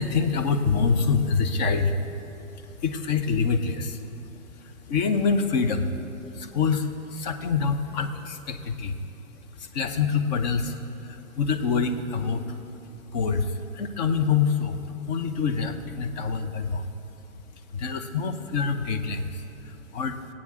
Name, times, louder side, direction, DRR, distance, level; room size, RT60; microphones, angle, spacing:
voice 1, 0.0-5.9 6.3-9.0 9.6-12.6 13.1-14.8 15.1-16.9 17.7-20.2, left 5 dB, 30° left, 7 dB, 0.8 m, -26 dB
18.5 x 8.6 x 3.7 m, 2.9 s
hypercardioid pair, 130°, 42 cm